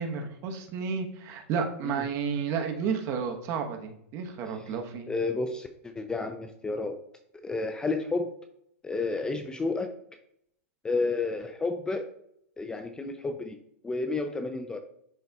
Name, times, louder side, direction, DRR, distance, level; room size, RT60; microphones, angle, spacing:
voice 1, 0.0-5.1, right 6 dB, 40° right, 5 dB, 1.0 m, -32 dB
voice 2, 5.1-7.0 7.3-8.3 8.8-9.9 10.8-12.1 12.6-13.6 13.8-14.8, left 3 dB, 10° left, 7 dB, 0.4 m, -31 dB
11.0 x 3.9 x 2.3 m, 0.72 s
hypercardioid pair, 140°, 7 cm